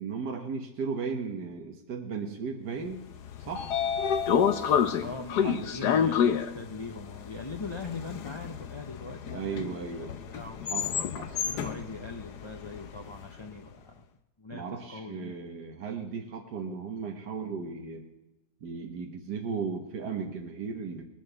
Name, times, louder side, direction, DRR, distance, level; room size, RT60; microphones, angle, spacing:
voice 1, 0.0-3.0 3.4-3.8 5.4-5.6 9.3-10.2 10.6-11.4 14.5-18.1 18.6-21.0, right 5 dB, 90° right, 2 dB, 1.8 m, -36 dB
Train / Sliding door, 3.1-13.3, left 8 dB, 85° left, 1.4 m, -29 dB
voice 2, 5.0-10.6 11.4-14.0 14.4-15.4, left 3 dB, 30° left, 3 dB, 0.5 m, -41 dB
20.0 x 7.6 x 6.9 m, 0.97 s
omnidirectional pair, 1.7 m